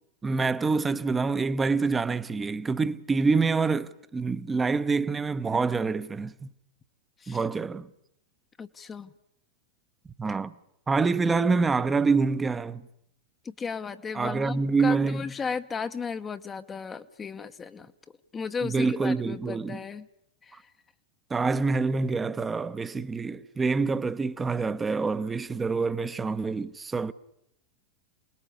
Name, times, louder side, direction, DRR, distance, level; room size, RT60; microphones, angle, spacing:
voice 1, 0.2-6.5 7.3-7.9 10.2-10.5 10.9-12.9 14.1-15.3 18.6-19.8 21.3-27.1, right 4 dB, 15° right, 1.0 m, -26 dB
voice 2, 8.6-9.1 13.4-17.9 18.3-20.1 20.4-20.6, left 5 dB, 20° left, 1.0 m, -35 dB
28.5 x 20.0 x 8.5 m
figure-of-eight pair, 90°, 0 cm